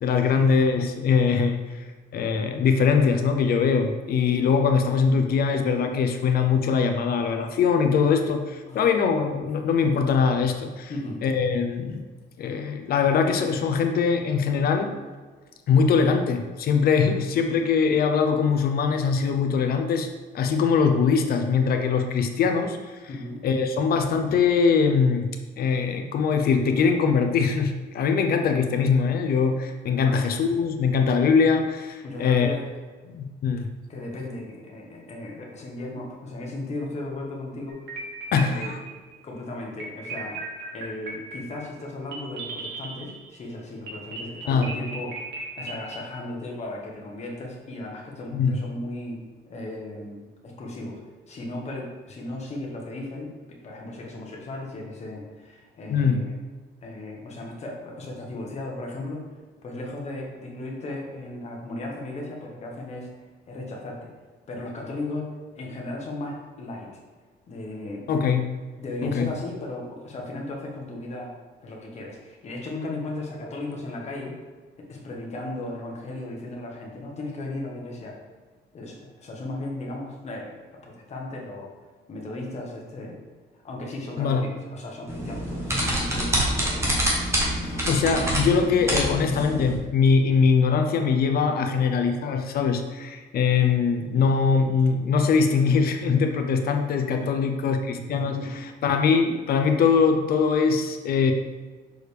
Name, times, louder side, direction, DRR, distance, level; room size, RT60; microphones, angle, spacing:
voice 1, 0.0-1.9 2.1-10.9 11.2-12.0 12.4-14.9 15.7-20.1 20.3-23.0 23.4-25.3 25.6-32.5 33.1-33.7 38.3-38.8 44.5-44.7 48.3-48.6 55.9-56.2 68.1-68.5 69.0-69.3 84.2-84.4 87.6-98.4 98.8-101.3, left 5 dB, 55° left, 6 dB, 0.6 m, -22 dB
voice 2, 10.9-11.2 23.1-23.4 30.0-30.4 32.0-32.6 33.9-37.8 38.4-38.7 39.2-40.4 40.7-45.3 45.6-51.0 51.3-56.3 56.8-59.3 59.6-63.1 63.5-64.1 64.5-66.9 67.5-68.1 68.8-71.3 71.6-74.4 74.8-78.2 78.7-80.6 80.8-81.7 82.1-83.2 83.6-86.8 91.4-91.6 97.0-97.3 97.9-98.6, left 2 dB, 35° left, -1 dB, 1.2 m, -36 dB
sound 1, 37.7-39.2 39.8-43.4 43.9-46.0, right 3 dB, 65° right, 1.5 m, -36 dB
sound 2, 85.1-89.8, equal, 15° right, 1.2 m, -26 dB
6.3 x 4.9 x 3.3 m, 1.4 s
cardioid pair, 175°, 19 cm